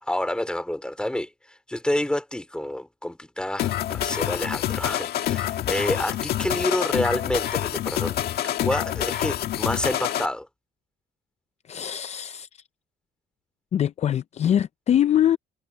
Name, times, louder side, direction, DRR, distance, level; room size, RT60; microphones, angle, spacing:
voice 1, 0.0-8.2 8.6-10.5, left 1 dB, 5° left, 3.2 m, -28 dB
sound 1, 3.6-10.3, left 12 dB, 65° left, 1.8 m, -27 dB
voice 2, 11.6-12.6 13.7-15.4, left 10 dB, 40° left, 0.5 m, -23 dB
cardioid pair, 110°, 17 cm